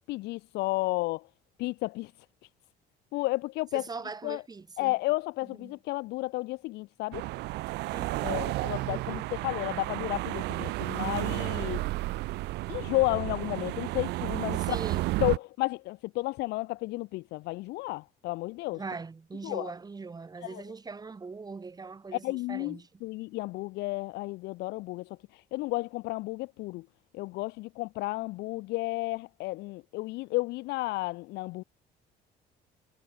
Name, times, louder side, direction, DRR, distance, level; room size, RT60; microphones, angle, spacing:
voice 1, 0.1-1.2 1.6-2.1 3.1-3.8 4.2-4.4 4.8-7.2 8.2-11.8 12.7-14.8 15.2-18.8 19.4-19.7 20.4-20.6 22.1-26.9 27.1-31.6, left 21 dB, 85° left, 0.6 m, -32 dB
voice 2, 3.7-5.0 5.5-5.8 7.9-8.5 8.9-9.3 14.6-15.1 18.7-22.9, right 4 dB, 25° right, 2.3 m, -41 dB
sound 1, 7.1-15.4, right 20 dB, 85° right, 0.7 m, -32 dB
cardioid pair, 110°, 17 cm